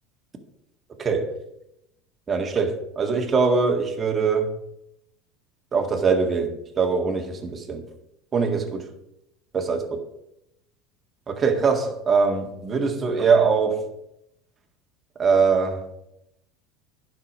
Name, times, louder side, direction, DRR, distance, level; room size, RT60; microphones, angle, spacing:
voice 1, 1.0-1.3 2.3-4.5 5.7-7.8 8.3-8.9 9.5-9.8 11.3-13.9 15.2-15.9, right 5 dB, 30° right, 4 dB, 1.8 m, -22 dB
10.0 x 6.0 x 6.1 m, 0.82 s
supercardioid pair, 105°, 0 cm